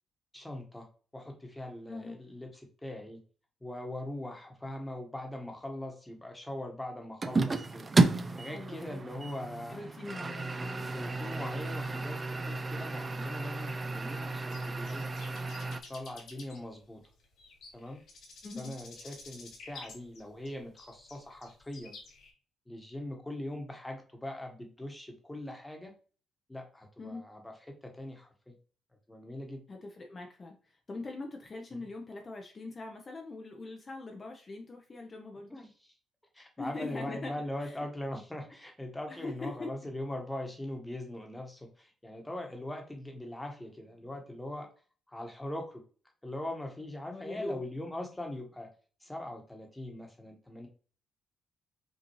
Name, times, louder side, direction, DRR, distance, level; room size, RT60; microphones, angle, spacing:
voice 1, 0.3-0.9 1.1-3.2 3.6-7.9 8.4-9.8 10.9-15.1 15.9-17.0 17.7-18.0 18.6-22.0 22.7-25.9 26.5-27.5 27.8-28.5 29.1-29.6 31.7-31.8 35.5-35.9 36.3-44.7 45.1-45.8 46.2-48.7 49.0-50.7, left 1 dB, 10° left, 2 dB, 1.2 m, -41 dB
voice 2, 1.9-2.2 8.5-9.0 9.7-10.9 18.4-18.7 27.0-27.2 29.7-35.5 36.6-37.3 37.6-37.8 39.1-39.7 47.0-47.6, left 2 dB, 35° left, 2 dB, 0.7 m, -42 dB
sound 1, 7.2-15.8, right 3 dB, 30° right, 0.5 m, -32 dB
sound 2, 14.5-22.3, left 4 dB, 70° left, 1.4 m, -51 dB
5.3 x 2.6 x 3.0 m, 0.40 s
cardioid pair, 90°, 0 cm